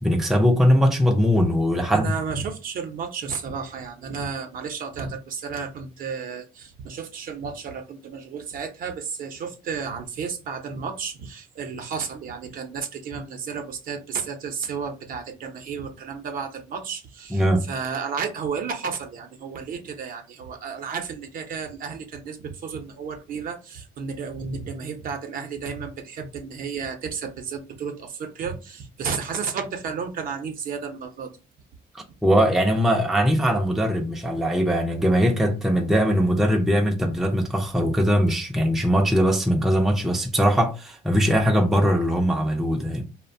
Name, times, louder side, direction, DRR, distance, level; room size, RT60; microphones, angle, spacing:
voice 1, 0.0-2.1 17.3-17.7 31.9-43.0, equal, ahead, 0.4 m, -21 dB
voice 2, 1.9-17.4 17.7-31.3, right 6 dB, 55° right, 0.6 m, -32 dB
2.5 x 2.1 x 2.5 m
cardioid pair, 110°, 17 cm